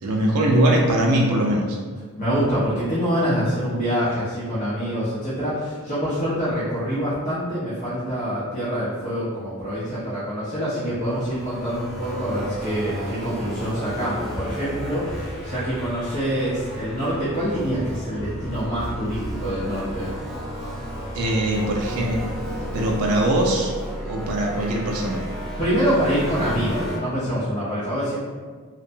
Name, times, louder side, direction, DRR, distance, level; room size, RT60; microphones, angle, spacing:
voice 1, 0.0-1.8 21.1-22.2 22.7-23.7 24.0-25.2, right 1 dB, 85° right, 0 dB, 0.4 m, -21 dB
voice 2, 2.2-20.1 25.6-28.2, equal, 35° left, -12 dB, 0.7 m, -25 dB
sound 1, 10.8-27.0, equal, ahead, 0.3 m, -32 dB
2.6 x 2.1 x 2.6 m, 1.5 s
head